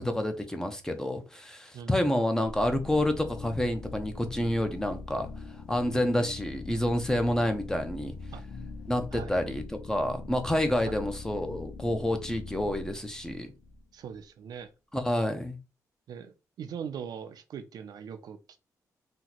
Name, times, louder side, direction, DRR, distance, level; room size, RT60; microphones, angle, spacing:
voice 1, 0.0-5.3 5.7-8.1 8.9-13.5 14.9-15.6, left 1 dB, 10° left, 0.6 m, -28 dB
sound 1, 2.4-14.2, left 3 dB, 85° left, 0.5 m, -42 dB
voice 2, 13.9-14.7 16.1-18.6, right 7 dB, 75° right, 0.4 m, -41 dB
2.9 x 2.1 x 4.0 m
cardioid pair, 110°, 7 cm